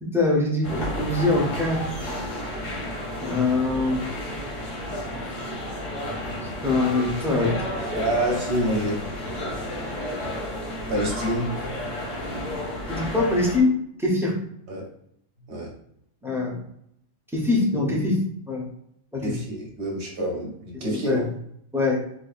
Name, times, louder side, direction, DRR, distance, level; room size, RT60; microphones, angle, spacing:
voice 1, 0.0-1.8 3.2-4.1 6.6-7.6 12.9-14.4 16.2-16.6 17.3-18.2 18.5-18.7 19.1-19.4 20.7-21.3 21.7-22.0, left 2 dB, 5° right, -2 dB, 0.4 m, -23 dB
sound 1, 0.6-13.6, left 1 dB, 80° left, 1.4 m, -32 dB
voice 2, 7.9-9.0 10.9-11.6 14.7-14.9 15.5-15.7 19.2-21.3, right 1 dB, 55° right, -1 dB, 1.2 m, -27 dB
4.6 x 2.3 x 2.4 m, 0.71 s
omnidirectional pair, 1.3 m